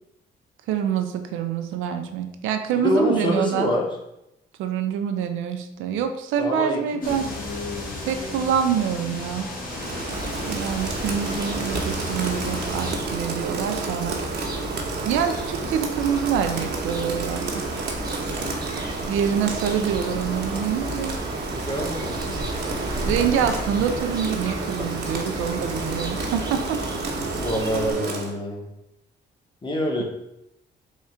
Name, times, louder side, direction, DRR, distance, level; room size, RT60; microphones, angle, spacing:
voice 1, 0.7-3.7 4.6-7.3 8.1-9.5 10.5-14.2 15.0-17.6 19.1-21.2 23.0-26.8, right 8 dB, 90° right, 7 dB, 0.5 m, -26 dB
voice 2, 2.8-3.9 6.4-6.8 21.7-22.2 27.4-28.7 29.6-30.0, left 1 dB, 25° left, -1 dB, 1.1 m, -25 dB
sound 1, 7.0-13.0, left 2 dB, 45° left, 1.1 m, -33 dB
Rain, 9.7-28.4, right 3 dB, 60° right, 0.9 m, -31 dB
sound 2, 10.1-27.9, right 1 dB, 20° right, 0.7 m, -33 dB
3.5 x 2.4 x 4.3 m, 0.85 s
cardioid pair, 90°, 20 cm